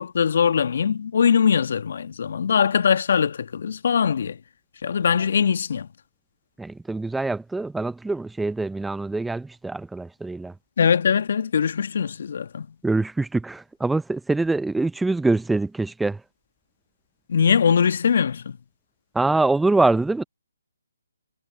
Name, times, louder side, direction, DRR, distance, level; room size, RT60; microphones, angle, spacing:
voice 1, 0.0-4.4 4.8-5.9 10.8-12.7 17.3-18.6, left 7 dB, 55° left, 1.4 m, -21 dB
voice 2, 6.6-10.5 12.8-16.2 19.1-20.2, right 3 dB, 5° right, 0.5 m, -24 dB
figure-of-eight pair, 145°, 0 cm